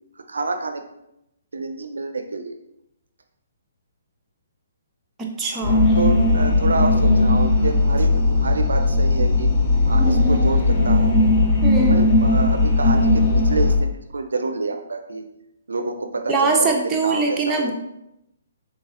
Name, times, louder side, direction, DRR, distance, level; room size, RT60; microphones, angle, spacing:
voice 1, 0.2-0.8 1.5-2.5 5.5-9.5 9.8-11.1 11.6-15.3 15.7-17.7, right 3 dB, 80° right, 6 dB, 0.4 m, -28 dB
voice 2, 5.2-6.0 11.6-12.0 16.3-17.7, right 3 dB, 15° right, -1 dB, 0.6 m, -22 dB
sound 1, 5.6-13.8, left 2 dB, 20° left, 1.0 m, -17 dB
3.9 x 3.7 x 2.5 m, 0.85 s
hypercardioid pair, 140°, 0 cm